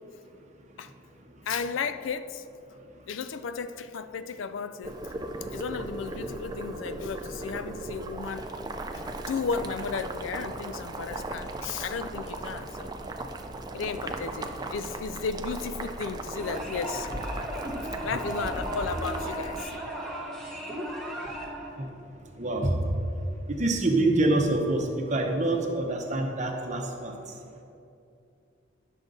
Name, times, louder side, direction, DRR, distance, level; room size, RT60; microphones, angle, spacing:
voice 1, 1.5-2.4 3.1-5.2 5.5-8.5 8.9-13.0 13.7-17.3 18.0-19.7, left 5 dB, 85° left, 0.4 m, -34 dB
Boiling, 4.8-19.6, right 2 dB, 20° right, 0.4 m, -37 dB
sound 1, 16.4-21.7, right 1 dB, ahead, 1.2 m, -35 dB
voice 2, 22.4-22.7 23.5-24.8 25.1-27.1, right 2 dB, 40° right, 0.9 m, -25 dB
10.5 x 6.5 x 3.9 m
head